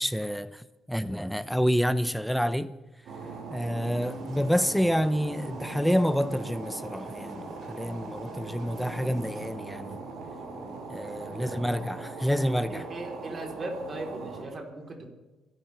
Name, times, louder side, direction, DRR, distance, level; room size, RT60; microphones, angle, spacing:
voice 1, 0.0-2.7 3.5-10.0 10.9-12.9, equal, ahead, 0.7 m, -28 dB
sound 1, 3.1-14.4, right 3 dB, 85° right, 5.2 m, -40 dB
sound 2, 3.8-9.5, equal, 65° right, 5.4 m, -46 dB
voice 2, 12.7-15.1, right 2 dB, 40° right, 3.9 m, -38 dB
27.5 x 12.0 x 3.5 m
cardioid pair, 90°, 0 cm